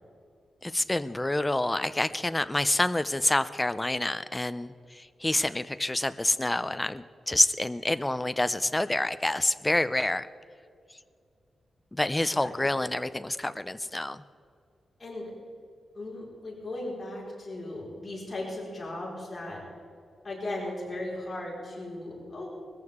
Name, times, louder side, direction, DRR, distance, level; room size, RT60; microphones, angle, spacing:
voice 1, 0.6-10.3 11.9-14.2, left 1 dB, 10° left, 13 dB, 0.5 m, -27 dB
voice 2, 12.3-12.7 15.0-15.3 15.9-19.6 20.2-22.5, left 1 dB, 25° left, -5 dB, 4.7 m, -37 dB
21.0 x 14.5 x 3.6 m, 2.4 s
wide cardioid pair, 150°, 0 cm